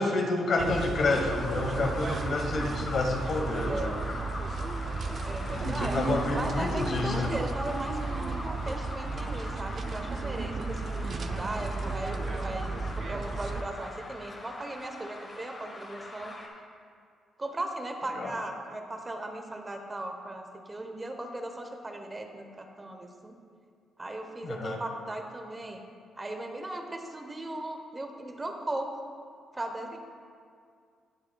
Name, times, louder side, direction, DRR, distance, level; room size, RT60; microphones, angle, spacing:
voice 1, 0.0-3.9 5.5-7.3 18.1-18.4 24.4-24.8, left 3 dB, 55° left, 3 dB, 1.2 m, -29 dB
sound 1, 0.6-13.6, right 4 dB, 45° right, 0.5 m, -34 dB
sound 2, 0.9-16.5, left 2 dB, 30° left, 1.5 m, -41 dB
voice 2, 3.3-3.9 5.2-16.3 17.4-23.4 24.0-25.8 26.2-28.9 29.5-30.0, right 1 dB, 20° right, 4 dB, 0.9 m, -37 dB
18.0 x 6.4 x 2.3 m, 2.2 s
cardioid pair, 90°, 0 cm